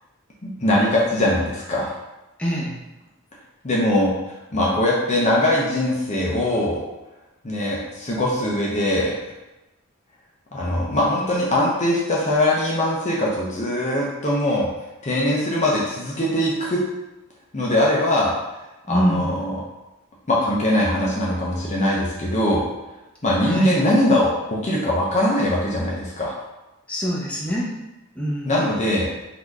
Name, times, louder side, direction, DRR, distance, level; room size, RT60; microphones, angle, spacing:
voice 1, 0.4-1.9 3.6-4.1 4.5-6.8 7.4-9.1 10.5-14.7 15.0-16.8 17.5-18.3 18.9-19.5 20.3-22.6 23.2-26.3 28.4-29.1, left 1 dB, 35° left, -4 dB, 0.7 m, -21 dB
voice 2, 2.4-2.8 18.9-19.3 23.5-23.7 26.9-27.7 28.2-28.5, equal, 5° left, -6 dB, 0.9 m, -24 dB
4.2 x 2.7 x 4.6 m, 0.99 s
head